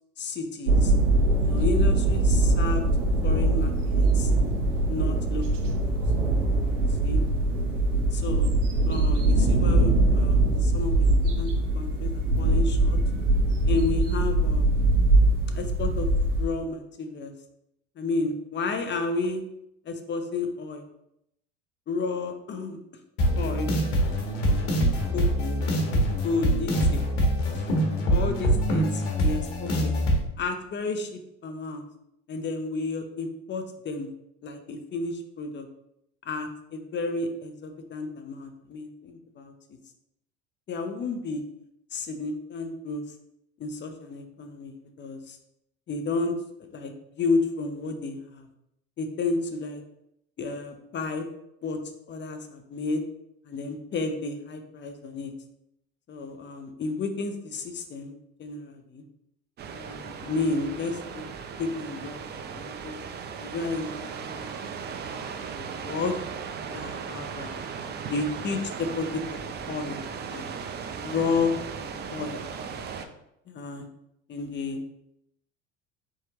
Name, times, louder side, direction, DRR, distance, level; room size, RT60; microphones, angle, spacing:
voice 1, 0.2-0.9 1.4-2.8 3.2-4.3 4.9-6.0 7.0-7.3 8.1-8.5 8.8-13.0 13.7-14.7 15.5-16.1 16.4-17.3 18.0-19.4 19.9-20.8 21.9-22.8 23.4-23.7 24.7-25.6 26.2-27.1 27.5-27.7 28.1-30.0 30.4-31.9 32.3-34.1 34.4-35.7 36.2-39.5 40.7-41.4 41.9-43.0 43.6-45.4 45.9-46.3 46.7-48.5 49.0-49.8 50.4-51.3 51.6-51.8 52.1-53.0 53.4-55.3 56.1-58.1 58.4-59.0 59.7-61.2 61.6-63.0 63.3-64.6 64.8-66.2 66.7-67.7 68.1-69.4 69.7-70.0 70.3-70.4 71.0-72.4 73.5-73.8 74.3-74.8, left 3 dB, 30° left, 7 dB, 0.7 m, -32 dB
sound 1, 0.7-16.4, right 2 dB, 90° right, 0.8 m, -22 dB
sound 2, 23.2-30.2, equal, 70° left, 1.3 m, -24 dB
sound 3, 59.6-73.1, right 6 dB, 30° right, 0.5 m, -37 dB
4.3 x 3.5 x 3.0 m, 0.79 s
hypercardioid pair, 80°, 36 cm